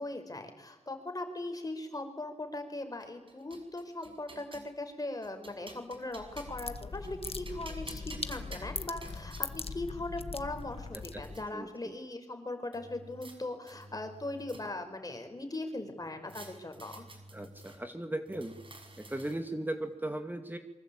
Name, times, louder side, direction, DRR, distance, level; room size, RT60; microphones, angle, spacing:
voice 1, 0.0-17.1, left 2 dB, 30° left, 6 dB, 5.3 m, -39 dB
sound 1, 3.0-4.7 5.2-6.7 7.0-9.5 10.2-10.3 10.6-11.4 12.7-13.4 13.7-14.9 16.3-17.8 18.3-19.6, right 2 dB, 50° right, 6.3 m, -51 dB
sound 2, 6.1-11.5, left 4 dB, 55° left, 1.4 m, -40 dB
voice 2, 11.5-11.9 17.3-18.6 19.0-20.6, right 1 dB, 15° right, 6 dB, 2.2 m, -37 dB
27.0 x 24.5 x 8.9 m, 1.1 s
wide cardioid pair, 70°, 12 cm